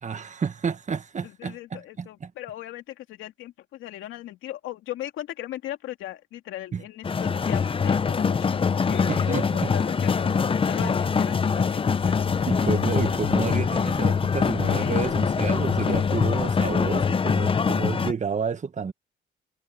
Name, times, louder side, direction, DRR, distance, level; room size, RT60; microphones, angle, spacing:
voice 1, 0.0-2.3 6.7-6.8 9.1-9.7 10.8-10.9 12.5-18.9, right 6 dB, 40° right, 1.6 m, -30 dB
voice 2, 1.2-9.4 9.7-12.3 14.8-15.2 15.9-16.4, left 14 dB, 90° left, 2.7 m, -38 dB
sound 1, 7.0-18.1, left 5 dB, 25° left, 0.6 m, -23 dB
sound 2, 12.0-17.1, left 8 dB, 55° left, 2.8 m, -41 dB
cardioid pair, 90°, 20 cm